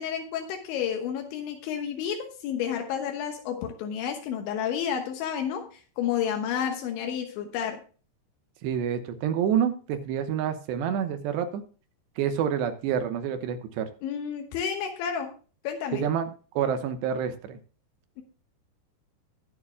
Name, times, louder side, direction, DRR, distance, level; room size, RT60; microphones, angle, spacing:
voice 1, 0.0-7.8 14.0-15.3 15.7-16.0, left 8 dB, 85° left, 4 dB, 3.5 m, -31 dB
voice 2, 8.6-11.6 12.2-13.9 15.9-16.3 16.5-17.6, right 8 dB, 80° right, 8 dB, 3.0 m, -28 dB
21.0 x 7.4 x 2.2 m, 0.38 s
omnidirectional pair, 5.2 m